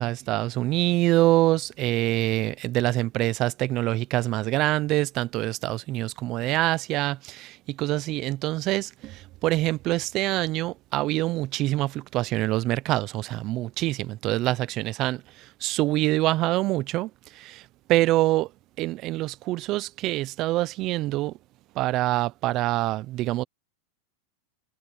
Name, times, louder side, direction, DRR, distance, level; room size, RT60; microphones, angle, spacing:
voice 1, 0.0-18.5 18.8-21.3 21.8-23.4, right 17 dB, 35° right, 0.4 m, -25 dB
supercardioid pair, 155°, 0 cm